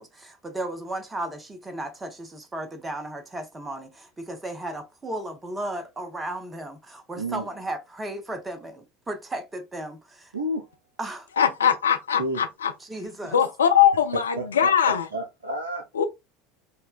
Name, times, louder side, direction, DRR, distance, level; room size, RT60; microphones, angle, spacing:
voice 1, 0.0-10.3 11.0-11.3 12.8-13.4, right 1 dB, 15° right, 0.7 m, -35 dB
voice 2, 7.2-7.5 10.3-10.6 12.2-12.4 14.4-14.7 15.1-15.8, right 1 dB, 80° right, 0.5 m, -30 dB
voice 3, 11.4-12.7 13.3-15.1 15.9-16.0, left 8 dB, 75° left, 0.4 m, -21 dB
5.4 x 2.2 x 2.2 m
figure-of-eight pair, 75°, 0 cm